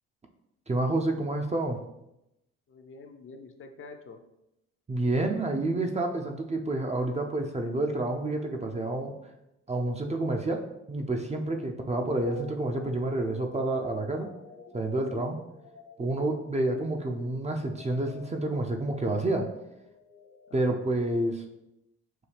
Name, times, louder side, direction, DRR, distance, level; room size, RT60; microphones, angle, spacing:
voice 1, 0.7-1.8 4.9-9.1 9.7-14.3 14.7-15.4 16.0-19.5 20.5-21.4, right 2 dB, 20° right, 3 dB, 0.5 m, -29 dB
voice 2, 2.7-4.2 11.5-11.8 16.2-16.4 20.5-20.8, left 4 dB, 40° left, 5 dB, 0.5 m, -47 dB
sound 1, 12.1-21.3, left 6 dB, 70° left, 1.3 m, -51 dB
5.6 x 2.2 x 3.3 m, 0.87 s
hypercardioid pair, 60°, 33 cm